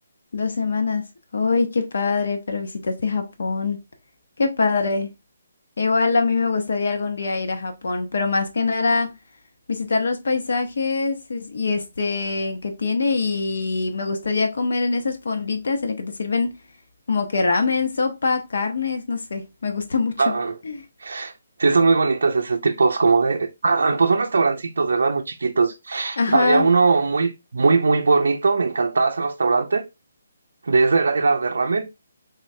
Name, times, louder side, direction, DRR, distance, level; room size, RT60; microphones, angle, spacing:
voice 1, 0.3-1.1 1.3-3.8 4.4-5.1 5.8-9.2 9.7-16.5 17.1-20.4 20.6-20.9 26.2-26.7, left 4 dB, 65° left, 0.6 m, -23 dB
voice 2, 20.2-20.5 21.0-21.3 21.6-29.9 30.6-32.0, right 4 dB, 75° right, 0.4 m, -20 dB
3.7 x 3.1 x 2.7 m
hypercardioid pair, 175°, 0 cm